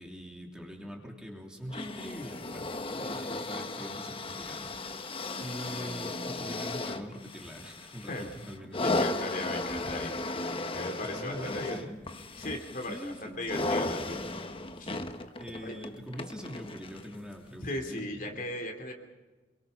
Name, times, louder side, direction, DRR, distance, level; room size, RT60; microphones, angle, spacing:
voice 1, 0.0-8.9 11.1-12.0 12.9-14.4 15.4-18.4, equal, 5° right, 0 dB, 3.0 m, -43 dB
sound 1, 1.7-17.2 18.0-18.1, left 2 dB, 30° left, 1.2 m, -35 dB
voice 2, 8.8-10.2 10.7-11.7 12.4-14.2 14.8-15.0 15.6-15.7 17.6-18.9, left 1 dB, 45° left, 4 dB, 3.1 m, -37 dB
27.5 x 23.0 x 5.7 m, 1.3 s
head